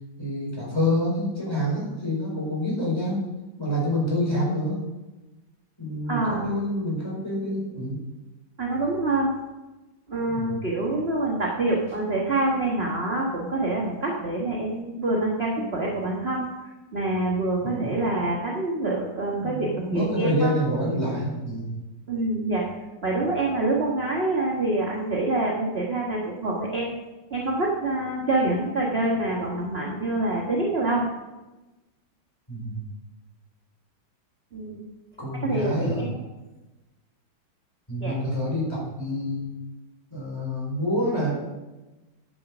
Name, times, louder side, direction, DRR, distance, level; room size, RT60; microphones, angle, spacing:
voice 1, 0.2-3.2 3.6-4.8 5.8-8.0 10.3-10.6 15.6-15.7 17.6-18.0 19.3-21.7 29.0-29.1 32.5-32.8 35.2-36.1 37.9-39.5 40.1-41.3, equal, 10° left, -4 dB, 4.6 m, -27 dB
voice 2, 6.1-6.6 8.6-9.3 10.1-20.5 22.1-22.6 23.0-26.9 27.3-31.0 34.5-34.8 35.4-36.2 38.0-38.2, right 2 dB, 35° right, -3 dB, 1.6 m, -26 dB
9.9 x 9.1 x 6.1 m, 1.1 s
omnidirectional pair, 2.1 m